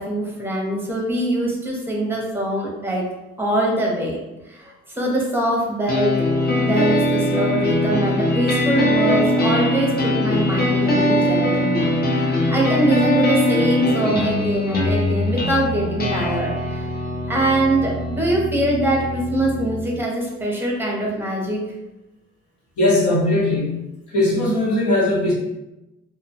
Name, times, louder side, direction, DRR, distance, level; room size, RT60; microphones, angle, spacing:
voice 1, 0.0-3.0 3.4-4.2 4.5-6.2 6.6-16.9 17.3-21.6, right 1 dB, 5° right, -2 dB, 0.7 m, -23 dB
sound 1, 5.9-19.9, left 1 dB, 30° left, 0.6 m, -21 dB
voice 2, 22.8-23.7 24.1-25.3, left 1 dB, 75° left, -6 dB, 1.2 m, -19 dB
2.5 x 2.2 x 2.7 m, 0.99 s
cardioid pair, 90°, 30 cm